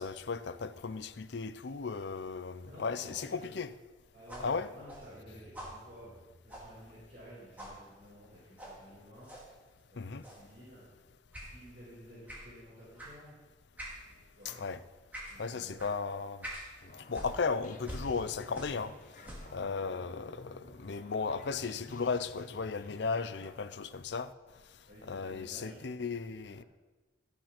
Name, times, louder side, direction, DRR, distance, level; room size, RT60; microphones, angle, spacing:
voice 1, 0.0-3.7 4.4-4.7 10.0-10.2 14.4-14.8 15.4-16.5 17.1-18.9 19.5-24.3 25.0-26.6, left 4 dB, 70° left, 0.6 m, -35 dB
voice 2, 2.6-3.5 4.1-6.1 6.4-9.3 9.9-10.8 11.5-13.4 14.0-14.6 15.3-15.8 24.9-26.2 26.5-26.6, equal, 45° right, 4.8 m, -53 dB
sound 1, 4.3-7.3 7.6-7.8 8.6-8.8 9.2-9.5 10.2-10.5 11.3-11.5 12.3-12.5 13.0-13.2 13.8-14.0 14.4-14.6 15.1-15.4 15.8-15.9 16.4-16.7 17.1-18.9 19.2-19.6, equal, 10° right, 2.6 m, -46 dB
sound 2, 16.8-23.5, left 1 dB, 45° left, 1.1 m, -52 dB
13.5 x 7.2 x 5.9 m
head